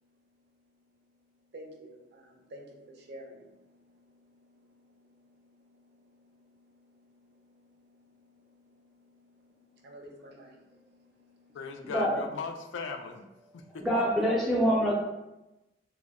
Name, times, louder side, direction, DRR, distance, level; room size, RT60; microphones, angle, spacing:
voice 1, 1.5-11.6, equal, 60° right, 1 dB, 0.5 m, -53 dB
voice 2, 11.5-13.3 13.5-13.9, left 5 dB, 75° left, 5 dB, 0.3 m, -38 dB
voice 3, 13.8-14.9, equal, ahead, -6 dB, 0.4 m, -25 dB
2.1 x 2.0 x 3.5 m, 0.96 s
head